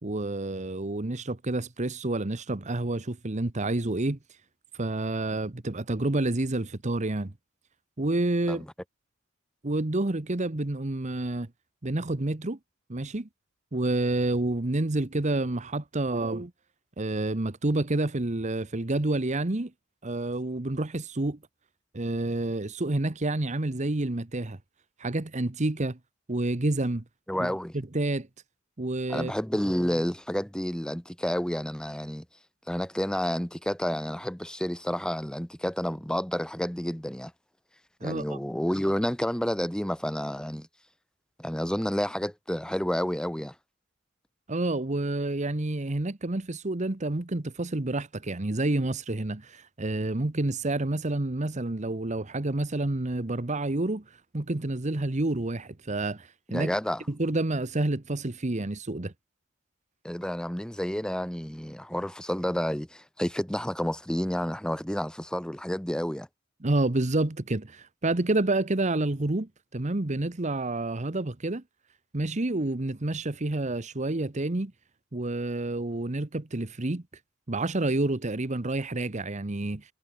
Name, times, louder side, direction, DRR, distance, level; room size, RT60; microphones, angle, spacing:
voice 1, 0.0-4.2 4.8-7.3 8.0-8.6 9.6-11.5 11.8-12.6 12.9-13.3 13.7-16.5 17.0-19.7 20.0-21.4 21.9-24.6 25.0-26.0 26.3-27.0 27.4-27.5 27.9-28.3 28.8-29.3 38.0-38.4 44.5-54.0 54.3-56.7 57.1-59.1 66.6-71.6 72.1-74.7 75.1-77.0 77.5-79.8, right 2 dB, 35° right, 1.1 m, -29 dB
voice 2, 27.3-27.7 29.1-32.2 32.7-37.3 38.0-40.7 41.4-43.5 56.5-57.0 60.0-66.3, equal, 5° left, 1.1 m, -30 dB
head